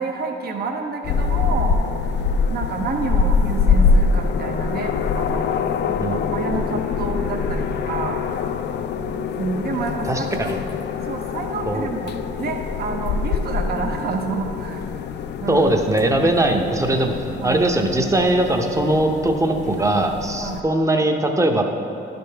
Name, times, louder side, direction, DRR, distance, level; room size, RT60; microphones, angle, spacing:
voice 1, 0.0-1.8 2.5-5.5 6.1-8.3 9.4-10.6 11.0-14.8 15.4-15.7 17.4-17.7 19.8-19.9 20.3-20.6, right 4 dB, 50° right, 3 dB, 0.7 m, -29 dB
sound 1, 1.0-20.6, left 5 dB, 60° left, 0.4 m, -24 dB
voice 2, 10.0-10.6 11.7-11.9 15.5-17.1 17.4-21.6, right 1 dB, 15° right, 4 dB, 0.7 m, -20 dB
11.5 x 5.2 x 3.4 m, 2.7 s
cardioid pair, 90°, 20 cm